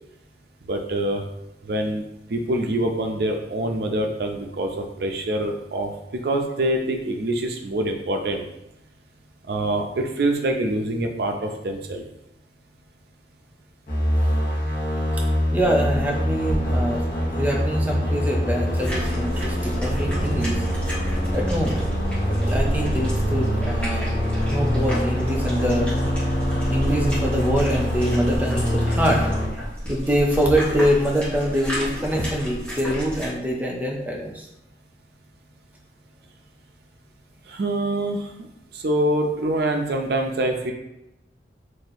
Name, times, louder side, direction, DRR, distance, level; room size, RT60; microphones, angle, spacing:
voice 1, 0.6-1.2 1.6-2.0 2.3-8.4 9.5-12.0 37.5-38.5 38.7-40.7, right 1 dB, 60° right, 3 dB, 0.5 m, -25 dB
sound 1, 13.9-29.5, equal, 50° left, 1.1 m, -24 dB
voice 2, 15.5-20.6 21.3-21.8 22.3-24.1 24.5-25.9 26.7-29.3 29.9-34.5, equal, 10° right, -1 dB, 0.5 m, -24 dB
sound 2, 15.6-19.8, equal, 80° left, 1.2 m, -34 dB
sound 3, 18.7-33.3, equal, 5° left, 1.2 m, -31 dB
2.8 x 2.6 x 4.0 m, 0.90 s
head